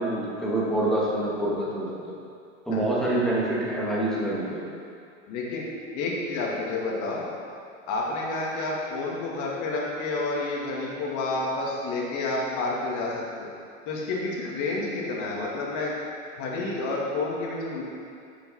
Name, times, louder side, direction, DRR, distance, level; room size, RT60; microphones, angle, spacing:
voice 1, 0.0-1.9 2.7-4.6, right 1 dB, ahead, -7 dB, 2.1 m, -26 dB
voice 2, 5.3-5.7 5.9-7.2 7.9-13.5 13.9-15.9 16.4-17.8, left 2 dB, 45° left, -3 dB, 2.1 m, -29 dB
7.0 x 5.6 x 5.6 m, 2.4 s
hypercardioid pair, 105°, 40 cm